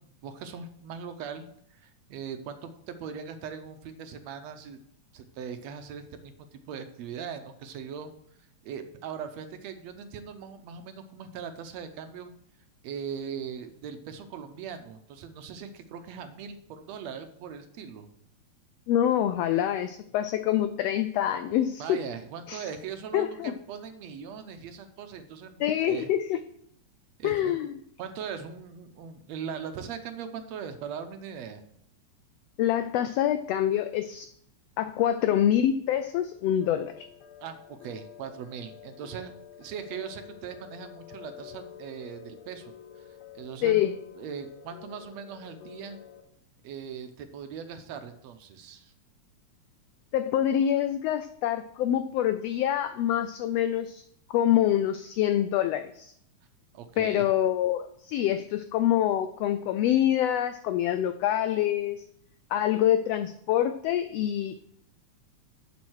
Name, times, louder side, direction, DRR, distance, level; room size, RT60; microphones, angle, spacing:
voice 1, 0.0-4.8 5.1-8.1 8.6-12.3 12.8-18.1 21.8-26.1 27.2-27.6 28.0-31.6 37.4-39.3 39.6-43.1 43.4-43.8 44.2-46.0 46.6-48.9 56.7-57.3, right 7 dB, 75° right, 8 dB, 1.9 m, -40 dB
voice 2, 18.9-22.0 22.5-22.7 23.1-23.5 25.6-26.4 27.2-27.7 32.6-34.3 34.8-37.0 43.6-43.9 50.1-54.0 54.3-56.1 57.0-62.0 62.5-64.6, left 11 dB, 85° left, 10 dB, 1.4 m, -26 dB
sound 1, 36.6-46.2, left 10 dB, 70° left, 2.1 m, -49 dB
7.5 x 7.2 x 6.2 m, 0.70 s
omnidirectional pair, 3.4 m